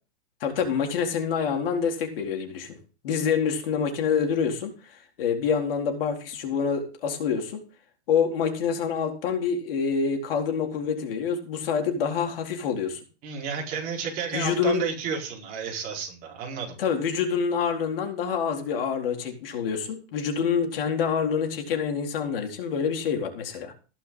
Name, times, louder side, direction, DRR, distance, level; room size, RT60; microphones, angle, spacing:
voice 1, 0.4-2.8 3.0-7.6 8.1-13.0 14.3-14.8 16.8-23.7, left 6 dB, 55° left, 4 dB, 4.1 m, -27 dB
voice 2, 13.2-16.8, right 6 dB, 25° right, -1 dB, 4.8 m, -32 dB
16.0 x 11.5 x 3.9 m, 0.35 s
supercardioid pair, 170°, 33 cm